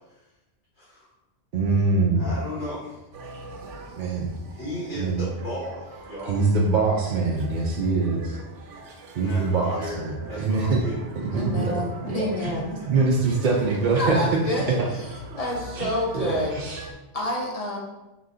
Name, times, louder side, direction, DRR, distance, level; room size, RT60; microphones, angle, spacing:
voice 1, 0.8-1.1 2.2-3.0 4.5-6.4 9.2-11.0, equal, 80° left, -8 dB, 1.7 m, -35 dB
voice 2, 1.5-2.3 4.0-4.3 5.0-5.2 6.3-8.4 9.1-10.8 11.1-11.7 12.1-12.6 12.9-14.4 14.7-14.9 15.8-15.9 16.1-16.8, right 3 dB, 55° right, -2 dB, 0.5 m, -23 dB
sound 1, 3.1-16.9, right 2 dB, 90° right, 0.9 m, -44 dB
voice 3, 11.3-12.8 14.0-15.1 15.3-16.5 16.8-17.8, left 1 dB, 35° left, -2 dB, 0.8 m, -28 dB
4.8 x 2.3 x 3.7 m, 1.0 s
omnidirectional pair, 1.2 m